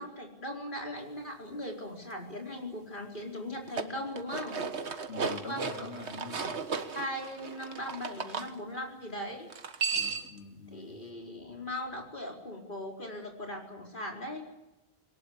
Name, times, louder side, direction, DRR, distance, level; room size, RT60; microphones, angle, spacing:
voice 1, 0.0-4.6 5.2-5.9 6.9-9.5 10.7-14.4, left 1 dB, 45° left, 1 dB, 4.8 m, -39 dB
sound 1, 3.5-8.5 9.5-10.4, right 5 dB, 80° right, 1.8 m, -35 dB
voice 2, 5.1-6.5 9.9-10.9, left 3 dB, 90° left, 3 dB, 3.3 m, -44 dB
22.0 x 20.0 x 9.7 m, 0.99 s
omnidirectional pair, 1.1 m